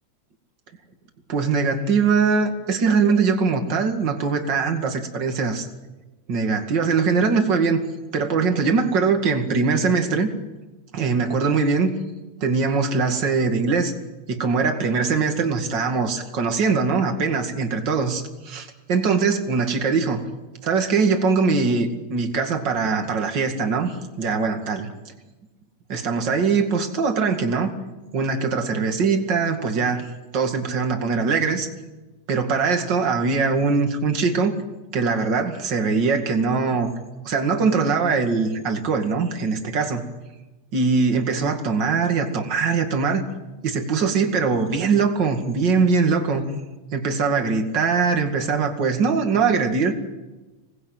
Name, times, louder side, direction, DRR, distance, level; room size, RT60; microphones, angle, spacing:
voice 1, 1.3-5.7 6.3-7.8 8.1-10.3 10.9-11.9 12.4-13.9 14.3-20.2 20.6-24.9 25.9-27.7 28.1-31.7 32.3-34.5 34.9-36.9 37.2-40.0 40.7-43.2 43.6-46.5 46.9-49.9, right 4 dB, 40° right, 5 dB, 2.7 m, -22 dB
26.5 x 19.5 x 9.1 m, 1.2 s
omnidirectional pair, 3.3 m